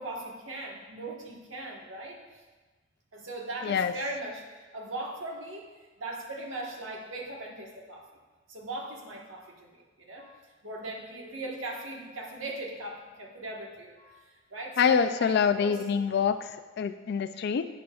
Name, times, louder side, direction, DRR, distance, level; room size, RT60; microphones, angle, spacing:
voice 1, 0.0-2.2 3.1-5.7 6.0-8.0 8.5-15.8, right 2 dB, 80° right, 0 dB, 1.4 m, -39 dB
voice 2, 14.8-16.5 16.8-17.7, left 6 dB, 55° left, 10 dB, 0.3 m, -25 dB
11.0 x 8.8 x 2.4 m, 1.3 s
head